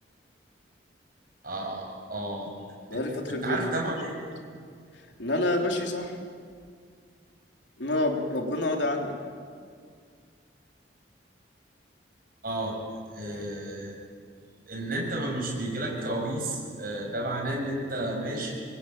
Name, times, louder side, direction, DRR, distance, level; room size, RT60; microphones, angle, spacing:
voice 1, 1.4-2.5 2.9-3.0 3.3-4.2 12.4-12.8 13.1-13.9 14.7-18.5, right 1 dB, 50° right, 0 dB, 7.2 m, -32 dB
voice 2, 2.9-3.8 5.2-6.2 7.8-9.1, left 1 dB, 70° left, 2 dB, 3.5 m, -28 dB
28.0 x 22.0 x 9.2 m, 2.2 s
head